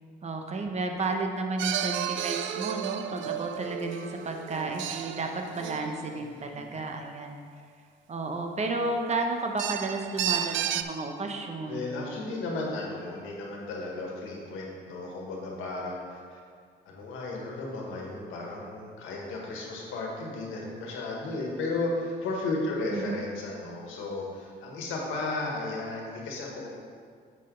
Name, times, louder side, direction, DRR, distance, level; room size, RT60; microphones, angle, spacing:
voice 1, 0.2-7.4 8.1-11.9 22.9-23.2, right 3 dB, 35° right, 3 dB, 0.9 m, -32 dB
sound 1, 1.6-6.5 9.6-10.8, right 11 dB, 75° right, 0.4 m, -32 dB
voice 2, 6.2-6.8 11.6-16.4 16.8-26.7, left 2 dB, 85° left, -2 dB, 1.6 m, -34 dB
7.7 x 6.3 x 3.9 m, 2.1 s
cardioid pair, 90°, 20 cm